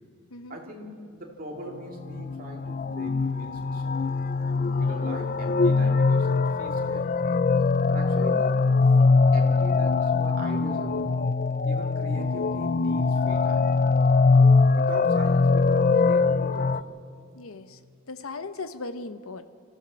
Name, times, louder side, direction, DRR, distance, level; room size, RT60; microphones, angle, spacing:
voice 1, 0.5-4.0 4.7-7.1 7.9-8.7 9.0-11.1 11.6-13.7 14.3-16.8, right 1 dB, 40° right, 0 dB, 2.6 m, -40 dB
sound 1, 2.1-16.8, left 4 dB, 40° left, 0.4 m, -22 dB
voice 2, 17.3-17.8 18.1-19.5, left 3 dB, 75° left, 11 dB, 0.9 m, -38 dB
25.0 x 15.0 x 7.0 m, 2.2 s
head